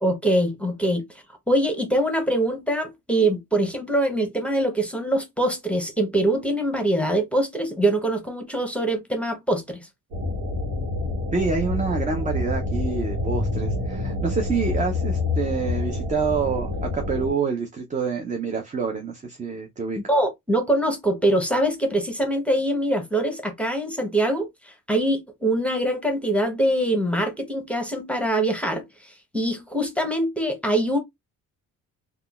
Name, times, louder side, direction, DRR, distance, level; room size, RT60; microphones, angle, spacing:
voice 1, 0.0-1.0 1.5-9.8 20.1-31.0, right 1 dB, 5° left, 0.8 m, -23 dB
sound 1, 10.1-17.3, left 2 dB, 90° right, 1.2 m, -27 dB
voice 2, 11.3-20.0, right 5 dB, 25° right, 0.5 m, -27 dB
3.6 x 2.3 x 2.3 m
cardioid pair, 90°, 30 cm